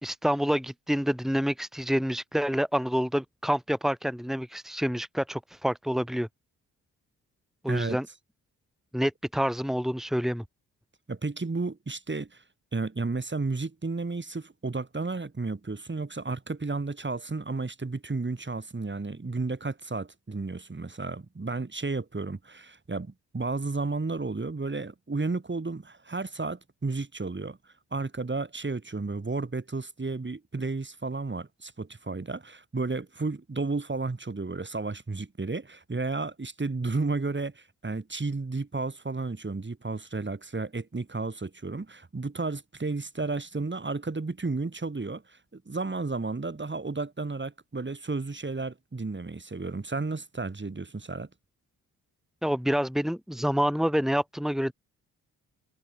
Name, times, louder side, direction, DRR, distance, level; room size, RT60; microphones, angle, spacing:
voice 1, 0.0-6.3 7.6-8.1 8.9-10.4 52.4-54.7, equal, ahead, 4.2 m, -27 dB
voice 2, 7.7-8.0 11.1-12.4 12.7-51.3, right 3 dB, 30° right, 6.0 m, -32 dB
supercardioid pair, 50°, 38 cm